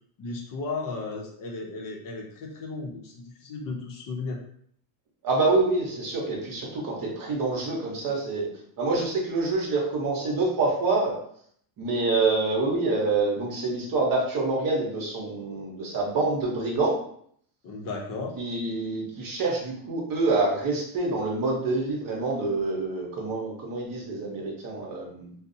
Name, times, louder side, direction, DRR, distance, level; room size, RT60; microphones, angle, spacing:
voice 1, 0.2-4.4 17.6-18.4, left 3 dB, 45° left, 0 dB, 0.5 m, -35 dB
voice 2, 5.2-8.5 8.8-11.1 11.8-17.0 18.4-25.3, right 3 dB, 45° right, -1 dB, 0.8 m, -26 dB
2.5 x 2.0 x 2.6 m, 0.64 s
cardioid pair, 120°, 48 cm